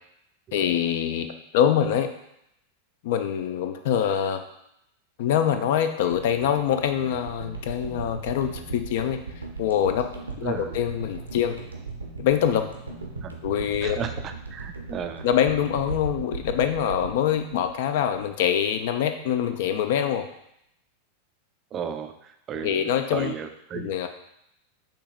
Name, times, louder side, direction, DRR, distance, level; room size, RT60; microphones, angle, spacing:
voice 1, 0.5-2.1 3.0-4.4 5.2-9.2 9.6-10.1 10.4-11.6 12.2-12.7 13.4-14.0 15.2-20.2 22.6-23.3 23.7-24.1, left 9 dB, 50° left, 8 dB, 0.4 m, -24 dB
sound 1, 6.1-18.4 18.7-18.9, right 3 dB, 80° right, 0.6 m, -38 dB
voice 2, 10.4-10.8 13.2-13.3 13.8-15.2 21.7-23.9, right 7 dB, 30° right, 8 dB, 0.3 m, -34 dB
6.5 x 2.8 x 2.5 m, 0.79 s
figure-of-eight pair, 90°, 0 cm